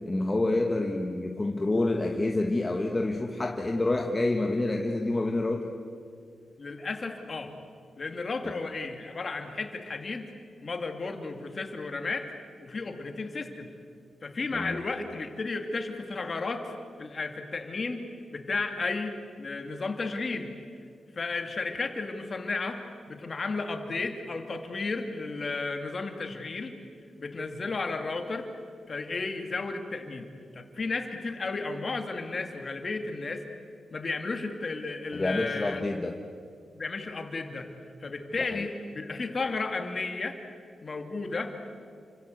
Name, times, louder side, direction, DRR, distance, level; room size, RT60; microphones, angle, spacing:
voice 1, 0.1-5.7 8.4-8.5 14.5-14.8 35.1-36.2 38.5-38.7, left 2 dB, 20° left, 2 dB, 1.5 m, -28 dB
voice 2, 6.6-7.5 8.0-10.3 10.6-12.3 12.6-13.7 14.2-16.7 17.0-18.0 18.3-20.5 21.2-22.8 23.1-26.7 27.2-28.5 28.9-30.3 30.5-33.4 33.9-35.8 36.7-37.7 38.0-40.4 40.8-41.5, left 3 dB, 35° left, 5 dB, 2.6 m, -33 dB
29.5 x 25.0 x 8.1 m, 2.3 s
wide cardioid pair, 150°, 0 cm